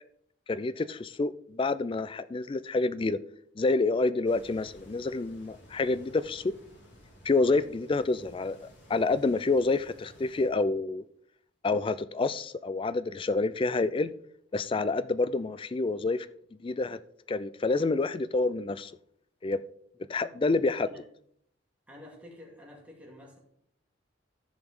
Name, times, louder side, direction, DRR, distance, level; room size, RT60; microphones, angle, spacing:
voice 1, 0.5-3.2 3.6-6.5 7.2-11.0 11.6-14.1 14.5-16.3 16.6-17.0 17.3-18.9 19.4-19.6 20.1-20.9, left 3 dB, 25° left, 0.3 m, -28 dB
sound 1, 4.2-10.5, equal, 60° left, 2.4 m, -55 dB
voice 2, 21.9-23.4, left 1 dB, 5° right, 2.4 m, -49 dB
14.0 x 5.0 x 3.7 m
head